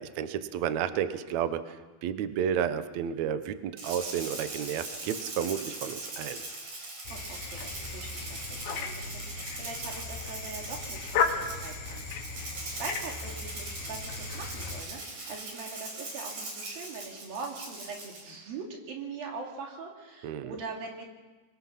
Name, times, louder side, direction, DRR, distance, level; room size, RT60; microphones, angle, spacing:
voice 1, 0.0-1.8 2.0-6.4 20.2-20.6, right 9 dB, 80° right, 11 dB, 1.6 m, -31 dB
Rattle (instrument), 3.8-18.3, right 2 dB, 45° right, 5.7 m, -41 dB
sound 1, 7.1-14.8, left 5 dB, 80° left, 3.6 m, -35 dB
voice 2, 7.1-12.3 12.7-21.1, right 4 dB, 65° right, 0 dB, 4.5 m, -42 dB
24.5 x 20.5 x 5.8 m, 1.3 s
omnidirectional pair, 4.7 m